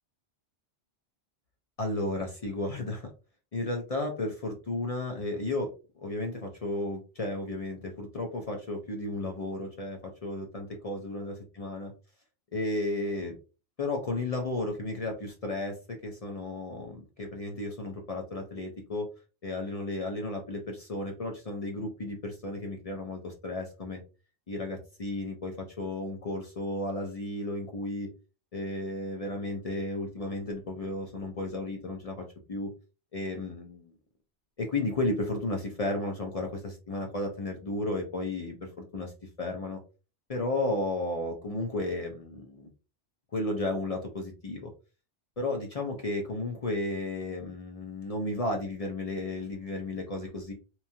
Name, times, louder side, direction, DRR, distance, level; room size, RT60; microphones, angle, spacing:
voice 1, 1.8-3.1 3.5-11.9 12.5-13.3 13.8-19.1 19.4-24.0 24.5-28.1 28.5-32.7 33.1-33.9 34.6-39.1 39.4-39.8 40.3-42.7 43.3-44.7 45.4-50.5, left 2 dB, 45° left, 2 dB, 0.5 m, -33 dB
2.9 x 2.3 x 2.6 m, 0.32 s
omnidirectional pair, 1.2 m